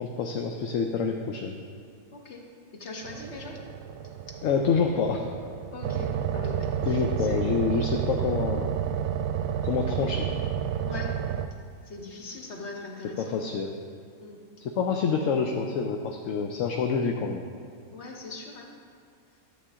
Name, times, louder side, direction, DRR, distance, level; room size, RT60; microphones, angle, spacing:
voice 1, 0.0-1.6 4.4-5.2 6.8-8.8 9.6-10.3 13.2-13.8 14.6-17.5, left 5 dB, 70° left, 3 dB, 1.0 m, -27 dB
voice 2, 2.1-2.4 2.7-3.6 4.3-4.4 5.7-7.5 10.8-11.1 11.9-13.3 14.2-14.4 17.9-18.7, left 3 dB, 50° left, 0 dB, 1.4 m, -40 dB
sound 1, 3.0-11.5, right 9 dB, 75° right, 1.0 m, -30 dB
11.5 x 8.2 x 3.6 m, 2.2 s
omnidirectional pair, 1.5 m